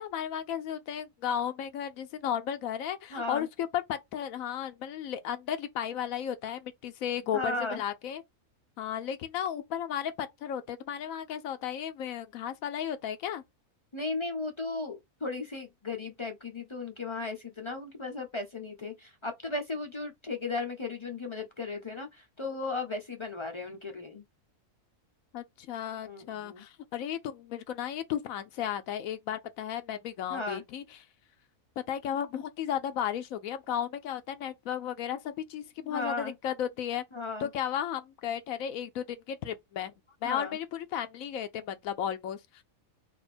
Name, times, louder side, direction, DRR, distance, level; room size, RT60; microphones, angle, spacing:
voice 1, 0.0-8.2 8.8-13.4 25.3-30.8 31.9-37.0 37.4-39.9 40.2-42.6, left 9 dB, 80° left, 1.0 m, -34 dB
voice 2, 3.1-3.5 7.3-7.8 13.9-24.2 26.1-26.7 30.3-30.6 35.9-36.3 37.1-37.5 40.2-40.6, left 3 dB, 40° left, 0.4 m, -36 dB
3.5 x 2.5 x 4.2 m
omnidirectional pair, 1.5 m